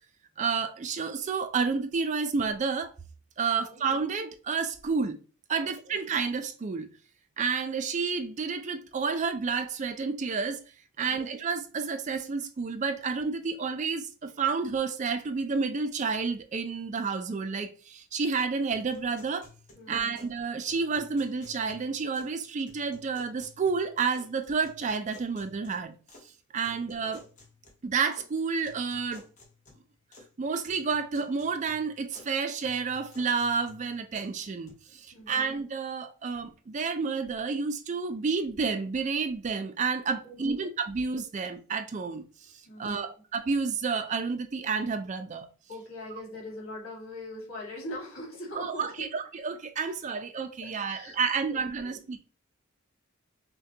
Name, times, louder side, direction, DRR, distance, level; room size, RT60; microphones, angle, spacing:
voice 1, 0.4-2.9 3.4-5.2 5.5-6.9 7.4-10.6 11.0-19.5 19.9-25.9 26.5-27.3 27.8-29.2 30.4-42.2 42.8-45.5 48.6-52.2, right 5 dB, 35° right, 0.4 m, -30 dB
voice 2, 5.6-6.0 11.0-11.3 19.7-20.2 26.9-27.2 35.1-35.5 40.2-40.7 42.7-43.1 45.7-49.1 50.2-50.3 50.6-52.1, left 1 dB, 70° left, 1.7 m, -42 dB
sound 1, 18.7-20.4 20.7-22.4 22.7-24.3 24.6-26.3 26.6-28.3 28.6-30.3 30.6-32.3 32.6-34.7, left 3 dB, 35° left, 1.0 m, -55 dB
5.7 x 2.2 x 2.7 m
head